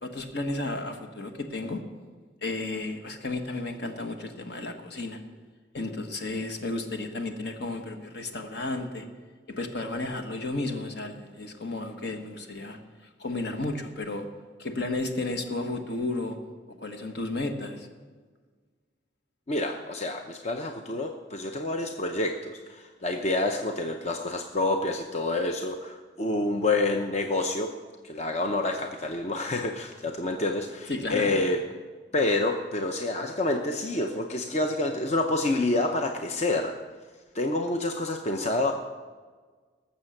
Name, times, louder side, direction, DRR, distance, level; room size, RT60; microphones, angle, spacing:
voice 1, 0.0-1.8 2.4-5.2 5.7-9.1 9.6-12.8 13.2-14.3 14.6-16.4 16.8-17.9 30.9-31.3, left 2 dB, 65° left, 5 dB, 1.5 m, -33 dB
voice 2, 19.5-27.7 28.0-31.6 32.1-36.7 37.3-38.7, left 2 dB, 40° left, 4 dB, 0.7 m, -28 dB
18.5 x 7.3 x 6.6 m, 1.5 s
head